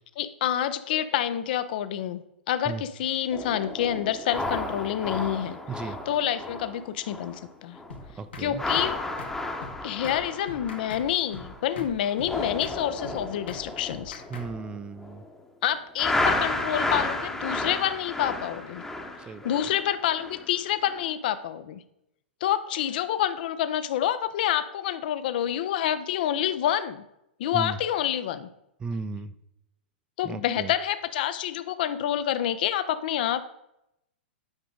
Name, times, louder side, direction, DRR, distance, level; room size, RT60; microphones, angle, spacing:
voice 1, 0.2-2.2 2.5-7.8 8.4-9.0 9.8-14.2 15.6-18.8 19.4-21.8 22.4-27.0 27.4-28.5 30.2-33.4, left 11 dB, 60° left, 12 dB, 0.4 m, -28 dB
sound 1, 3.3-7.5 7.7-8.0 8.4-11.7 12.0-15.3 16.0-20.5 20.9-21.1, left 2 dB, 5° left, 0.8 m, -32 dB
voice 2, 5.7-6.0 8.2-8.6 14.3-15.2 19.3-19.5 27.5-27.8 28.8-29.3 30.2-30.7, right 4 dB, 15° right, 13 dB, 0.4 m, -35 dB
sound 2, 7.9-8.0 8.3-8.5 8.7-8.9 9.2-9.3 9.6-9.7 10.0-10.2 10.5-11.0 11.3-11.5 11.8-11.9 12.2-12.3 12.6-12.8 13.0-13.2 13.5-13.6 13.9-14.5, left 3 dB, 75° left, 1.4 m, -41 dB
8.8 x 5.0 x 3.7 m, 0.82 s
hypercardioid pair, 110°, 6 cm